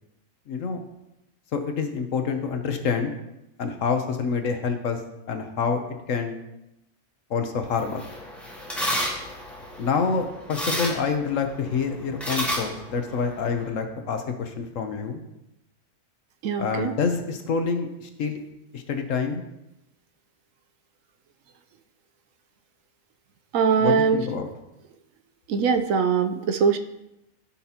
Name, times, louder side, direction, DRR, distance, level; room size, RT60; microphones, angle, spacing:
voice 1, 0.5-0.8 1.5-3.2 3.6-5.0 5.3-5.8 6.1-6.4 7.3-8.0 9.8-15.2 16.6-18.4 18.7-19.4 23.8-24.5, left 5 dB, 65° left, 6 dB, 1.2 m, -27 dB
sound 1, 7.6-13.7, equal, ahead, 1.8 m, -32 dB
voice 2, 16.4-16.9 23.5-24.2 25.5-26.8, right 6 dB, 70° right, 8 dB, 0.9 m, -22 dB
15.0 x 5.8 x 2.9 m, 0.90 s
omnidirectional pair, 1.5 m